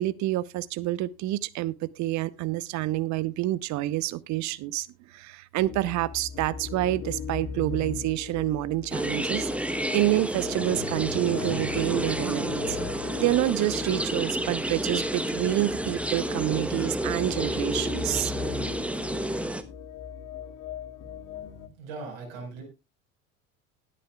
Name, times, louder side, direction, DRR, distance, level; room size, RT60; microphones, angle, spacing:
voice 1, 0.0-12.8 13.2-18.3, right 16 dB, 45° right, 0.9 m, -28 dB
sound 1, 5.6-21.7, left 6 dB, 45° left, 2.4 m, -39 dB
sound 2, 8.9-19.6, right 1 dB, 5° right, 1.0 m, -30 dB
sound 3, 10.4-13.5, left 6 dB, 85° left, 1.2 m, -42 dB
voice 2, 21.8-22.6, right 4 dB, 60° right, 5.0 m, -39 dB
19.5 x 8.5 x 2.3 m
figure-of-eight pair, 70°, 41 cm